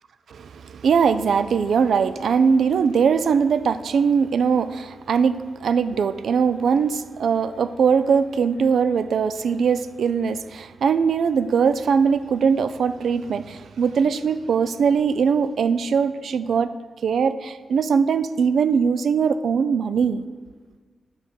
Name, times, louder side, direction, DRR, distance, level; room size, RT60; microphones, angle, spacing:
voice 1, 0.3-16.7 17.0-20.2, right 6 dB, 80° right, 0.3 m, -21 dB
8.0 x 6.0 x 6.8 m
wide cardioid pair, 130°, 0 cm